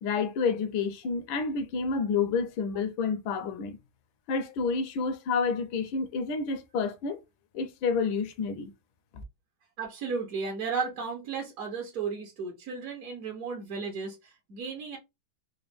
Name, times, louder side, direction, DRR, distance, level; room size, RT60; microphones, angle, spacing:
voice 1, 0.0-3.8 4.3-7.2 7.5-8.7 9.1-9.2, left 5 dB, 80° left, 1.4 m, -29 dB
voice 2, 9.8-15.0, right 5 dB, 60° right, 0.9 m, -34 dB
4.0 x 2.1 x 3.3 m
omnidirectional pair, 2.2 m